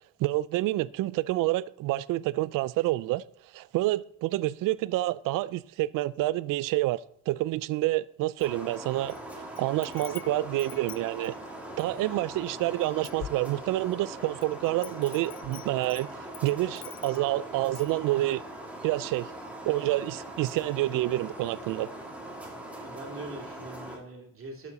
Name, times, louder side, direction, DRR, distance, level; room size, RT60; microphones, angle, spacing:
voice 1, 0.2-3.2 3.5-9.1 9.6-11.3 11.8-18.4 18.8-19.3 19.7-21.9, right 17 dB, 65° right, 0.5 m, -28 dB
Wind chime, 8.4-9.2 9.6-12.0 12.5-12.6 12.8-13.9 14.4-17.4 17.7-18.0, left 11 dB, 40° left, 0.4 m, -46 dB
sound 1, 8.4-24.0, right 1 dB, 5° right, 2.4 m, -41 dB
voice 2, 22.8-24.7, right 2 dB, 35° right, 2.6 m, -42 dB
12.5 x 7.2 x 4.1 m
cardioid pair, 110°, 35 cm